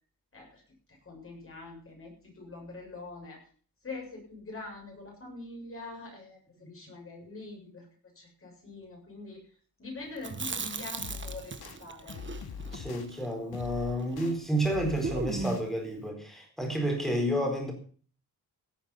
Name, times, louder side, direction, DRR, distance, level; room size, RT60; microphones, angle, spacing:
voice 1, 0.9-3.4 3.8-7.9 8.1-9.4 9.8-12.2, left 3 dB, 35° left, 0 dB, 7.3 m, -44 dB
Chewing mastication, 10.2-14.3 14.6-14.7 15.0-15.8, right 4 dB, 30° right, 1.3 m, -38 dB
sound 1, 11.0-11.8 12.1-13.1 13.5-14.3 14.6-15.6, left 6 dB, 80° left, 2.1 m, -41 dB
voice 2, 12.7-17.7, equal, ahead, 3 dB, 4.3 m, -30 dB
17.0 x 9.5 x 5.7 m, 0.43 s
wide cardioid pair, 170°, 37 cm